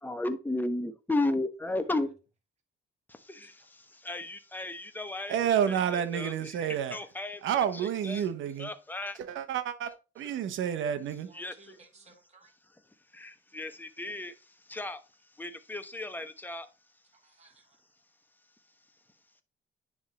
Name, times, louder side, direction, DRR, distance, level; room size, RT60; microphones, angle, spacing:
voice 1, 0.0-2.1 3.1-5.4 5.7-7.4 7.7-8.2 8.6-9.2 11.3-11.8 12.7-12.8 13.1-15.0 15.3-16.7, left 2 dB, 10° left, 1.0 m, -35 dB
voice 2, 5.3-7.0 7.4-8.7 9.2-11.3, right 9 dB, 80° right, 1.0 m, -30 dB
voice 3, 11.3-12.5 17.1-17.8, right 3 dB, 35° right, 1.8 m, -59 dB
9.8 x 3.6 x 4.1 m
cardioid pair, 90°, 20 cm